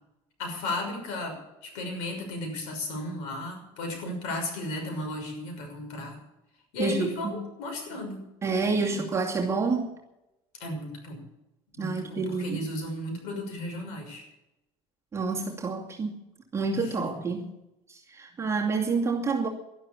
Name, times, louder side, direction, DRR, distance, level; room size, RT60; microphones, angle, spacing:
voice 1, 0.4-6.2 6.7-8.2 8.7-9.1 10.6-11.2 11.8-14.2 16.7-17.2, left 1 dB, 85° left, 3 dB, 6.2 m, -35 dB
voice 2, 6.8-7.4 8.4-9.9 11.8-12.6 15.1-16.2 16.5-17.5 17.9-19.5, right 4 dB, 25° right, -1 dB, 2.4 m, -28 dB
12.0 x 11.5 x 8.5 m, 0.90 s
cardioid pair, 130°, 12 cm